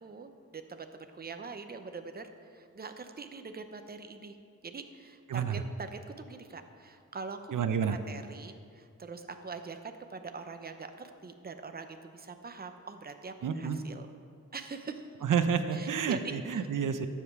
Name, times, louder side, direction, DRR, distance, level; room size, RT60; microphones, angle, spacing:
voice 1, 0.0-4.4 4.6-7.6 7.9-14.1 14.5-15.1 15.7-16.4, right 4 dB, 30° right, 7 dB, 0.8 m, -43 dB
voice 2, 5.3-5.6 7.5-8.0 13.4-13.8 15.2-17.1, right 7 dB, 90° right, 9 dB, 0.8 m, -29 dB
13.0 x 7.6 x 6.0 m, 2.3 s
wide cardioid pair, 145°, 31 cm